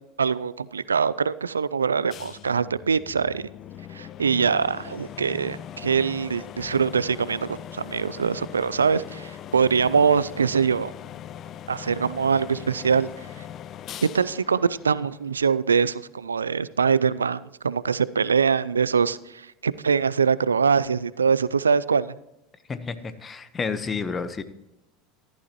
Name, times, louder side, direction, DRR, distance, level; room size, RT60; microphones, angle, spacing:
voice 1, 0.2-3.5 3.9-10.9 11.7-13.1 14.0-22.1, right 6 dB, 90° right, 18 dB, 0.3 m, -23 dB
sound 1, 2.1-15.6, left 10 dB, 45° left, 0.4 m, -40 dB
voice 2, 22.7-24.4, left 5 dB, 25° left, 12 dB, 1.0 m, -30 dB
14.5 x 11.5 x 3.0 m, 0.88 s
hypercardioid pair, 80°, 0 cm